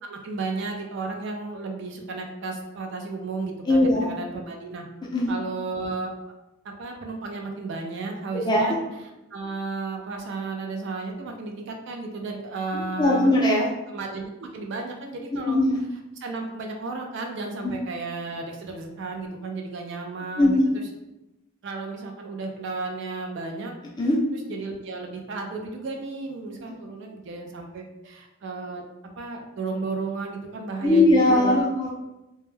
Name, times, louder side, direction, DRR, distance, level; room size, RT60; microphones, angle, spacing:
voice 1, 0.0-4.8 5.3-6.1 6.6-8.8 9.3-13.3 13.9-15.6 16.2-20.6 21.6-23.7 24.5-28.9 29.2-31.7, right 3 dB, 55° right, 2 dB, 0.4 m, -33 dB
voice 2, 3.7-4.1 5.1-5.3 8.3-8.7 12.7-13.7 15.3-15.8 17.6-17.7 20.4-20.7 24.0-24.2 30.8-31.9, left 1 dB, 20° left, -3 dB, 0.4 m, -20 dB
2.2 x 2.1 x 3.1 m, 0.96 s
head